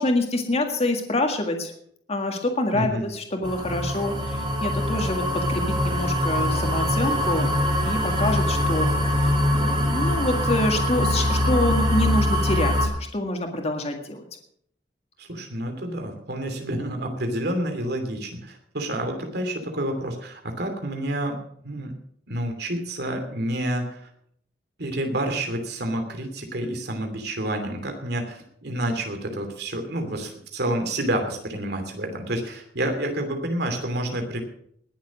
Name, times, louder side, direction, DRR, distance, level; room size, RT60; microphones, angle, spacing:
voice 1, 0.0-1.7 2.1-7.5 7.8-14.3, left 1 dB, 35° left, 3 dB, 1.8 m, -26 dB
voice 2, 2.7-3.1 15.2-21.4 21.6-21.9 22.3-24.1 24.8-34.4, right 1 dB, 65° right, 5 dB, 2.9 m, -29 dB
sound 1, 3.4-12.9, left 1 dB, 30° right, 2.9 m, -23 dB
20.0 x 7.3 x 6.3 m, 0.66 s
head